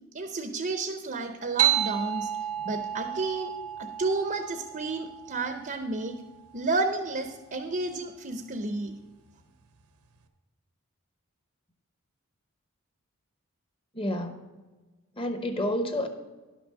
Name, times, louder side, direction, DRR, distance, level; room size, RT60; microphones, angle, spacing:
voice 1, 0.1-2.3 2.6-3.5 3.8-6.2 6.5-8.9, right 3 dB, 40° right, 7 dB, 0.6 m, -31 dB
sound 1, 1.6-6.6, right 11 dB, 80° right, 0.9 m, -31 dB
voice 2, 13.9-14.4 15.2-16.1, left 1 dB, 25° left, 7 dB, 0.9 m, -29 dB
11.0 x 6.1 x 6.3 m, 1.2 s
head